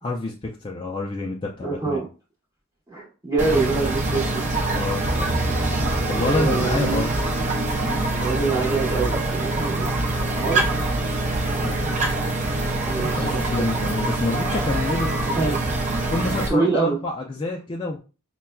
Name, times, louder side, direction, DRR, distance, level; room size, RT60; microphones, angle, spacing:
voice 1, 0.0-2.0 4.7-5.0 6.1-7.1 11.4-15.1 16.1-18.0, left 2 dB, 20° left, -1 dB, 0.3 m, -28 dB
voice 2, 1.6-2.1 2.9-4.5 6.0-7.0 8.1-9.9 10.4-10.6 12.8-13.7 15.2-15.6 16.5-17.0, right 4 dB, 15° right, -4 dB, 1.0 m, -25 dB
sound 1, 3.4-16.5, right 2 dB, 35° right, 0.6 m, -24 dB
5.4 x 2.2 x 2.2 m, 0.34 s
head